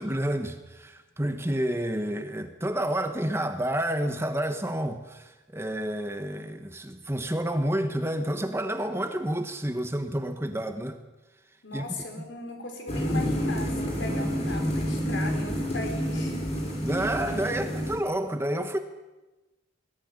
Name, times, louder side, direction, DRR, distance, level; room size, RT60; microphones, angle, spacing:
voice 1, 0.0-11.0 11.7-11.9 16.8-18.8, right 1 dB, 15° right, 1.2 m, -29 dB
voice 2, 11.6-16.4, left 2 dB, 65° left, 5.0 m, -38 dB
sound 1, 12.9-18.0, equal, 35° left, 5.8 m, -29 dB
21.5 x 14.5 x 9.8 m
head